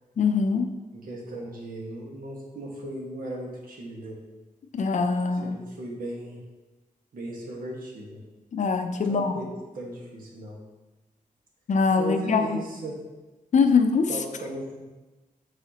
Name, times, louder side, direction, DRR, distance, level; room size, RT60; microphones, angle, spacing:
voice 1, 0.2-0.7 4.7-5.6 8.5-9.3 11.7-12.4 13.5-14.1, left 5 dB, 60° left, 7 dB, 0.5 m, -22 dB
voice 2, 0.9-4.2 5.3-6.4 7.1-8.2 9.0-9.5 9.7-10.6 12.0-12.9 14.1-14.8, right 1 dB, 80° right, -3 dB, 1.4 m, -36 dB
7.1 x 4.8 x 2.9 m, 1.1 s
wide cardioid pair, 145°, 14 cm